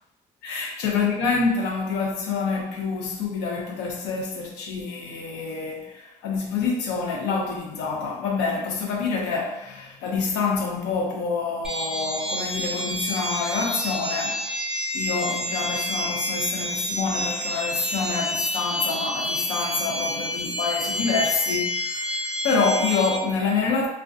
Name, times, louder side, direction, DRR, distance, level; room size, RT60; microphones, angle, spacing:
voice 1, 0.4-14.5 14.9-23.9, left 4 dB, 90° left, 0.5 m, -27 dB
sound 1, 11.6-23.2, left 1 dB, 5° right, 0.3 m, -29 dB
2.5 x 2.1 x 2.3 m
cardioid pair, 110°, 17 cm